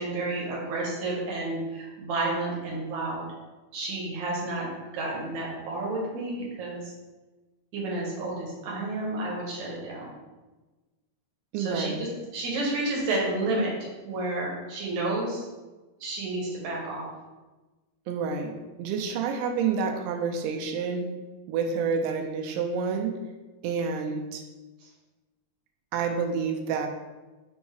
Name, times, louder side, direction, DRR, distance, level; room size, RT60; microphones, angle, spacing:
voice 1, 0.0-3.3 3.7-4.7 4.9-6.9 7.7-10.1 11.5-12.1 12.3-13.7 14.0-15.4 16.0-17.1, right 2 dB, 70° right, -4 dB, 1.9 m, -30 dB
voice 2, 11.5-12.1 18.1-21.1 21.5-23.2 23.6-24.4 25.9-26.9, right 5 dB, 90° right, 2 dB, 2.6 m, -29 dB
6.0 x 2.6 x 3.3 m, 1.2 s
omnidirectional pair, 4.5 m